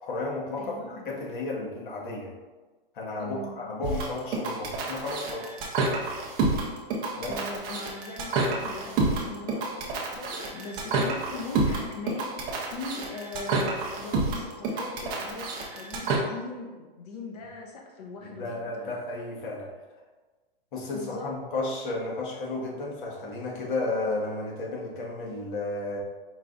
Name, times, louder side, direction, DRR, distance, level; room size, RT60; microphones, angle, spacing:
voice 1, 0.0-2.3 2.9-5.5 7.2-7.4 18.2-19.7 20.7-26.0, left 2 dB, 55° left, -3 dB, 1.3 m, -33 dB
voice 2, 0.6-1.1 3.2-3.5 7.3-9.7 10.2-18.9 20.9-21.3, left 3 dB, 40° left, 0 dB, 0.7 m, -40 dB
sound 1, 3.8-16.2, right 3 dB, 15° right, 0.4 m, -29 dB
4.7 x 2.3 x 3.8 m, 1.3 s
hypercardioid pair, 145°, 30 cm